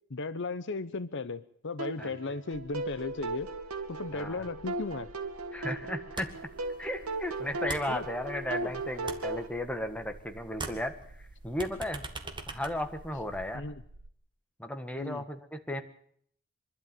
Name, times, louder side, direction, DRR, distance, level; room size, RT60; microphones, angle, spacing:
voice 1, 0.1-3.5 3.9-5.1 7.9-8.1 8.6-8.7 13.5-13.8 15.0-15.2, left 3 dB, 55° left, 14 dB, 0.8 m, -36 dB
sound 1, 1.8-9.5, right 2 dB, 85° right, 2.3 m, -37 dB
sound 2, 2.5-14.1, right 2 dB, 65° right, 1.1 m, -53 dB
voice 2, 4.1-4.4 5.5-6.3 6.8-10.9 11.4-12.0 12.5-13.6 14.6-15.8, left 1 dB, 5° left, 6 dB, 1.6 m, -35 dB
sound 3, 6.2-6.6 6.8-8.6 8.9-10.2 10.5-13.5, right 3 dB, 20° right, 1.9 m, -42 dB
24.5 x 12.0 x 9.2 m, 0.65 s
head